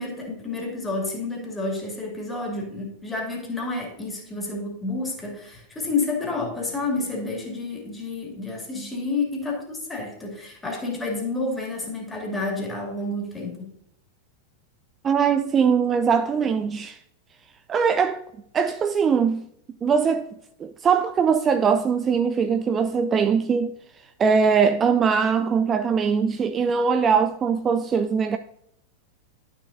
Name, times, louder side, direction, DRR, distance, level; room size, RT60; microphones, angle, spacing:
voice 1, 0.0-13.6, left 3 dB, 10° left, 2.5 m, -30 dB
voice 2, 15.0-17.0 17.7-18.2 18.5-19.5 19.8-20.3 20.6-23.7 24.2-28.4, right 6 dB, 25° right, 0.4 m, -21 dB
11.5 x 6.0 x 2.6 m
figure-of-eight pair, 90°, 0 cm